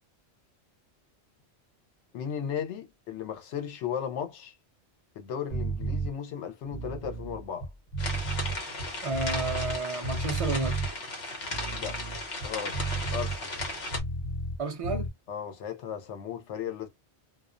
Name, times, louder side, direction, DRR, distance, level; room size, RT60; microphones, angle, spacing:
voice 1, 2.1-4.5 5.2-7.7 11.7-12.0 12.4-12.8 13.1-13.6 15.3-16.9, left 8 dB, 90° left, 1.0 m, -35 dB
sound 1, 5.5-6.1 6.6-9.8 10.0-10.9 11.4-14.6 14.8-15.1, right 2 dB, 45° left, 0.9 m, -33 dB
sound 2, 8.0-14.0, left 2 dB, 65° left, 1.1 m, -36 dB
voice 2, 9.0-10.8 14.6-15.1, right 3 dB, 60° right, 0.3 m, -31 dB
2.4 x 2.1 x 2.4 m
omnidirectional pair, 1.1 m